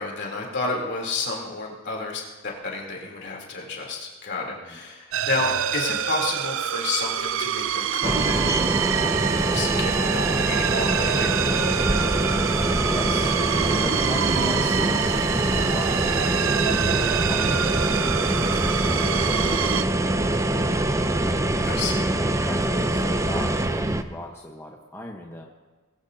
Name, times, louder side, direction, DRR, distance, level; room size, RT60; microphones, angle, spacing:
voice 1, 0.0-8.5 9.5-11.3 18.3-18.6 21.6-22.1, left 3 dB, 55° left, -1 dB, 3.3 m, -30 dB
sound 1, 5.1-19.8, right 9 dB, 65° right, 0.5 m, -27 dB
sound 2, 8.0-24.0, right 1 dB, 15° right, 0.6 m, -24 dB
voice 2, 12.4-13.4 13.7-17.9 18.3-21.1 22.4-25.5, left 1 dB, 10° left, 0 dB, 1.0 m, -38 dB
21.5 x 15.0 x 2.8 m, 1.3 s
head